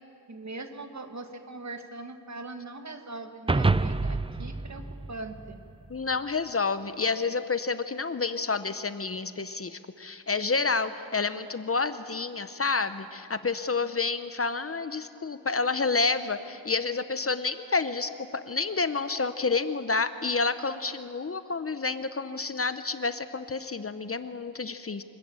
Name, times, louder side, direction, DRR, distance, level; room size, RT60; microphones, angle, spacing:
voice 1, 0.3-5.6, right 2 dB, 45° right, 7 dB, 1.6 m, -41 dB
sound 1, 3.5-6.0, right 3 dB, 15° right, 0.4 m, -28 dB
voice 2, 5.9-25.0, left 4 dB, 35° left, 12 dB, 0.8 m, -29 dB
24.5 x 14.0 x 8.9 m, 2.9 s
wide cardioid pair, 95°, 38 cm